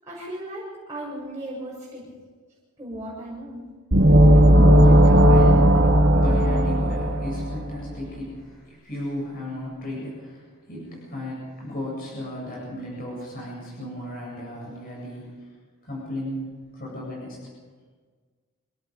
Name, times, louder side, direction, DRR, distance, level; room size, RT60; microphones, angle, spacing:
voice 1, 0.0-2.1 2.8-3.6, right 1 dB, 15° right, -10 dB, 7.2 m, -36 dB
sound 1, 3.9-7.7, equal, 60° right, 2.4 m, -15 dB
voice 2, 4.1-15.5 15.8-17.5, left 1 dB, 40° left, -4 dB, 7.9 m, -35 dB
27.0 x 18.5 x 5.3 m, 1.5 s
head